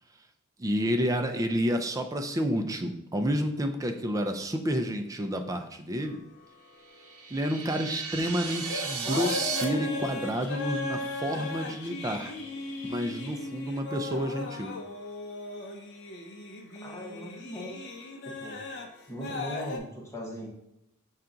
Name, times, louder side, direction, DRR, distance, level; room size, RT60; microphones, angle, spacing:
voice 1, 0.6-6.2 7.3-12.3 12.8-14.7, equal, 15° right, 5 dB, 0.4 m, -30 dB
sound 1, 6.0-7.6 8.4-8.6 8.9-19.8, left 2 dB, 50° left, 0.6 m, -38 dB
sound 2, 6.9-9.6, right 6 dB, 80° right, 0.6 m, -35 dB
sound 3, 8.4-13.4, left 3 dB, 70° left, 1.0 m, -40 dB
voice 2, 16.8-17.8 18.2-18.6 19.1-20.5, equal, 15° left, -3 dB, 1.0 m, -39 dB
5.6 x 2.4 x 3.8 m, 0.80 s
head